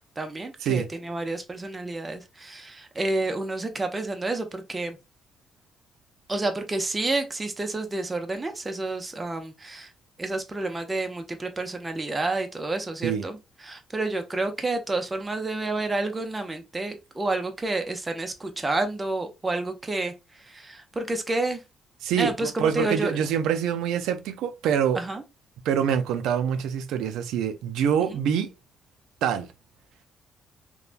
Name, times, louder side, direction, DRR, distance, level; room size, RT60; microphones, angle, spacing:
voice 1, 0.2-5.0 6.3-9.9 10.2-13.4 13.6-20.1 20.4-21.6 22.2-23.2 24.9-25.2, right 2 dB, 20° right, 0.5 m, -29 dB
voice 2, 22.0-25.0 25.7-28.5 29.2-29.5, right 8 dB, 90° right, 0.3 m, -25 dB
3.1 x 2.1 x 2.4 m
cardioid pair, 90°, 0 cm